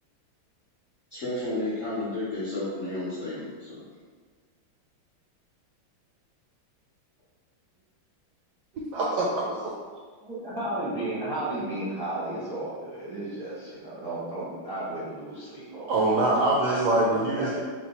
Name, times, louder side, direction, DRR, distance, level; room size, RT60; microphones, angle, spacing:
voice 1, 1.1-3.8, left 2 dB, 65° left, -10 dB, 0.7 m, -32 dB
voice 2, 8.7-9.6 15.9-17.6, right 2 dB, 75° right, -4 dB, 0.9 m, -24 dB
voice 3, 10.2-15.9 16.7-17.6, right 1 dB, 30° right, -10 dB, 0.4 m, -33 dB
4.3 x 2.2 x 4.1 m, 1.5 s
omnidirectional pair, 2.2 m